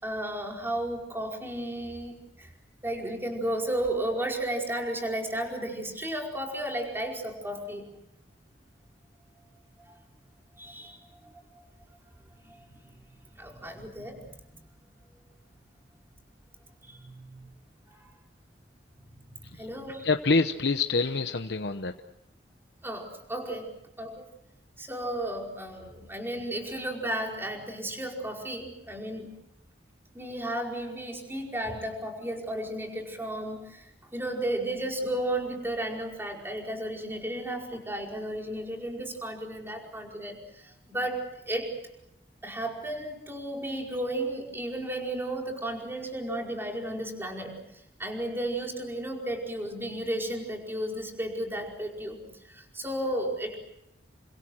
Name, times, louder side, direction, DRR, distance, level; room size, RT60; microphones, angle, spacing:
voice 1, 0.0-2.5 2.8-7.9 9.9-10.0 10.6-11.6 12.4-12.8 13.4-14.6 16.8-17.5 17.9-18.1 19.1-20.1 22.8-23.7 24.0-24.2 24.8-29.3 30.1-41.8 42.4-52.2 52.4-53.6, right 1 dB, 15° right, 1 dB, 5.0 m, -34 dB
voice 2, 20.0-21.9, left 3 dB, 65° left, 7 dB, 1.0 m, -26 dB
30.0 x 25.5 x 6.4 m, 0.84 s
head